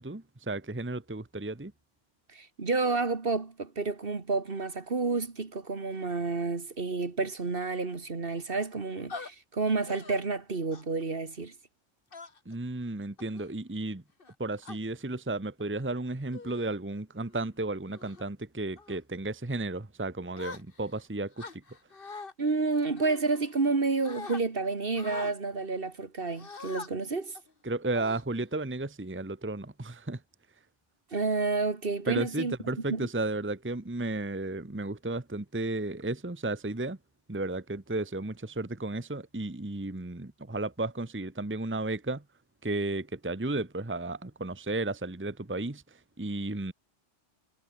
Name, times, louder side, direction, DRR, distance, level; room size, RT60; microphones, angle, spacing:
voice 1, 0.0-1.7 12.5-14.0 14.4-21.6 27.6-30.2 32.1-37.0 37.3-42.2 42.6-46.7, right 2 dB, 10° right, 1.1 m, -33 dB
voice 2, 2.3-11.5 22.4-27.4 31.1-32.5 32.9-33.1, right 3 dB, 50° right, 2.0 m, -30 dB
sound 1, 9.1-9.3 9.9-10.2 10.7-11.0 12.1-12.6 13.2-13.5 14.2-14.8 15.6-15.8 16.3-16.7 17.2-17.4 17.9-18.2 18.8-19.0 20.3-21.0 21.4-22.3 23.0-23.7 24.0-24.4 24.9-25.3 26.4-26.9 27.3-27.5 27.9-28.6, left 4 dB, 50° left, 2.1 m, -43 dB
omnidirectional pair, 1.2 m